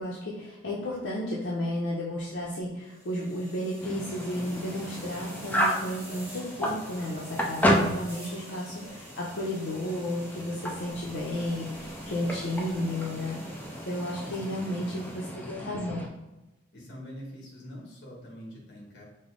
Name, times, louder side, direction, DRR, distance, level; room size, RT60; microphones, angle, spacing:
voice 1, 0.0-13.4 13.8-16.0, left 1 dB, 75° left, -5 dB, 0.7 m, -33 dB
sound 1, 2.8-15.6, right 1 dB, 10° right, 1.0 m, -48 dB
sound 2, 3.8-16.1, equal, 10° left, 0.4 m, -33 dB
voice 2, 14.2-15.1 16.7-19.0, equal, 60° left, -3 dB, 1.3 m, -45 dB
5.3 x 2.0 x 3.7 m, 1.0 s
head